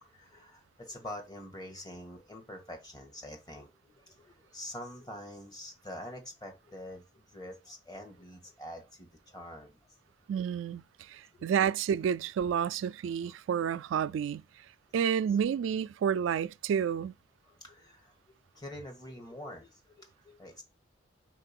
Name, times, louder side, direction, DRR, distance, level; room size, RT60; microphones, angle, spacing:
voice 1, 0.1-9.8 11.3-11.4 15.1-15.2 17.5-18.1 18.5-20.6, left 1 dB, 20° left, 1.6 m, -46 dB
voice 2, 10.3-14.4 14.9-17.1, right 8 dB, 90° right, 0.3 m, -30 dB
4.5 x 4.3 x 5.8 m
head